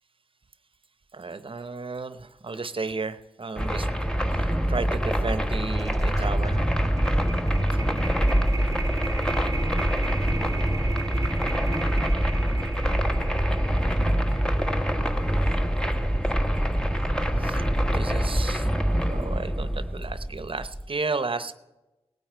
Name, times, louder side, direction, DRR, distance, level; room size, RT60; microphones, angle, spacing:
voice 1, 1.1-3.9 4.3-6.6 17.4-17.6 17.9-18.7 19.1-21.5, right 3 dB, 55° right, 13 dB, 0.8 m, -33 dB
sound 1, 3.6-20.9, equal, 5° left, 1.3 m, -25 dB
sound 2, 5.7-16.0, right 4 dB, 30° right, 0.6 m, -38 dB
18.5 x 8.7 x 4.6 m, 1.0 s
cardioid pair, 40°, 11 cm